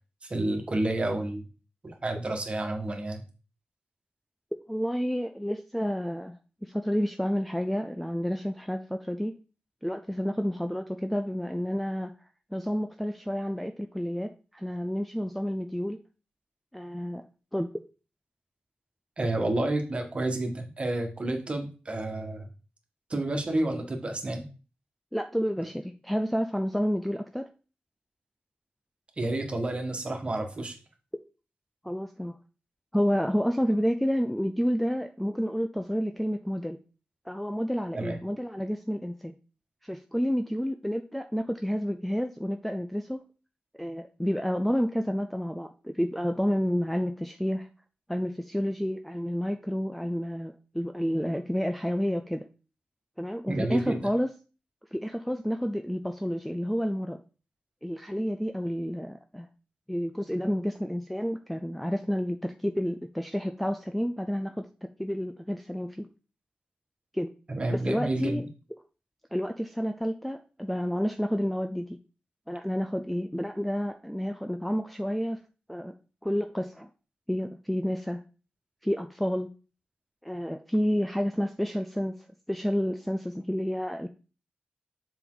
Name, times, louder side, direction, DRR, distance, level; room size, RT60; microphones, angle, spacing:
voice 1, 0.3-1.4 1.8-3.2 19.2-22.5 23.1-24.4 29.2-30.7 37.9-38.2 53.5-54.1 67.5-68.4, right 2 dB, 35° right, 3 dB, 1.7 m, -30 dB
voice 2, 4.7-6.4 6.6-9.4 9.8-12.1 12.5-16.0 16.7-17.2 17.5-17.7 25.1-27.5 31.8-32.3 32.9-36.8 37.3-39.3 39.8-43.2 43.8-47.7 48.1-52.5 53.2-54.3 54.9-57.2 57.8-59.5 59.9-64.7 65.0-66.1 67.1-67.3 67.7-68.4 69.3-72.0 72.5-75.4 75.7-75.9 76.2-76.9 77.3-78.2 78.8-79.5 80.2-84.1, equal, ahead, 5 dB, 0.5 m, -30 dB
7.3 x 5.4 x 3.9 m, 0.35 s
wide cardioid pair, 115°, 3 cm